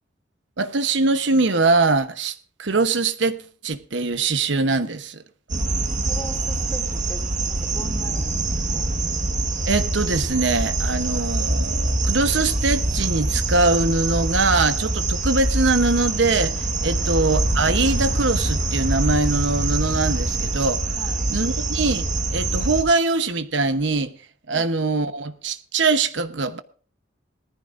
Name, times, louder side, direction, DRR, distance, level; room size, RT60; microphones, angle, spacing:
voice 1, 0.6-5.2 9.7-20.9 21.3-24.2 24.5-26.6, right 3 dB, 75° right, 1.0 m, -22 dB
sound 1, 5.5-22.8, right 2 dB, 40° right, 1.5 m, -24 dB
voice 2, 6.0-8.9 16.8-17.0 21.0-21.3, equal, 10° left, 2.6 m, -40 dB
19.0 x 14.0 x 2.6 m
head